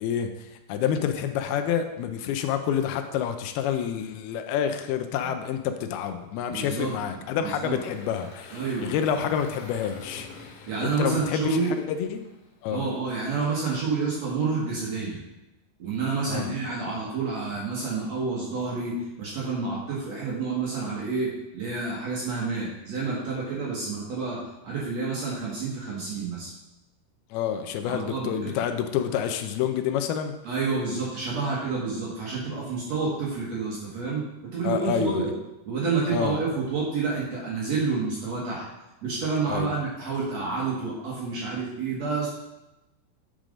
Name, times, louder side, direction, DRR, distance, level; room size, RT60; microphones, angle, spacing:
voice 1, 0.0-11.6 11.9-12.2 12.6-12.8 16.3-16.5 27.3-30.3 34.6-35.2 36.1-36.4 39.5-39.7, left 8 dB, 80° left, 7 dB, 2.5 m, -28 dB
voice 2, 6.5-7.8 8.5-9.0 10.7-11.8 12.7-15.2 15.8-24.4 24.6-26.5 27.8-28.5 30.4-34.3 34.5-35.3 35.7-38.7 39.0-42.3, right 4 dB, 55° right, -5 dB, 2.1 m, -29 dB
Engine, 7.5-12.7, left 3 dB, 65° left, 1.5 m, -46 dB
9.0 x 4.9 x 5.2 m, 0.97 s
omnidirectional pair, 4.6 m